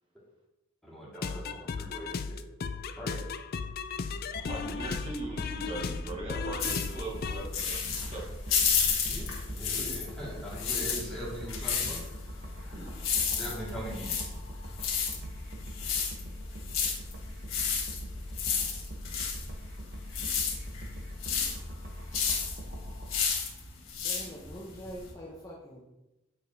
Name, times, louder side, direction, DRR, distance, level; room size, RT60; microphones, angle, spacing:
voice 1, 0.8-3.2 9.1-12.0 13.4-14.3 15.1-15.2, equal, ahead, -7 dB, 1.9 m, -41 dB
sound 1, 1.1-7.5, left 5 dB, 45° left, 0.3 m, -36 dB
sound 2, 4.3-23.2, equal, 45° right, 0.9 m, -42 dB
voice 2, 4.5-8.2 12.7-12.9, right 2 dB, 25° right, -3 dB, 1.2 m, -39 dB
sound 3, 6.6-10.2 10.5-25.1, left 6 dB, 70° left, 1.6 m, -32 dB
voice 3, 24.0-25.8, equal, 15° left, -4 dB, 0.8 m, -44 dB
8.7 x 4.8 x 2.7 m, 0.98 s
head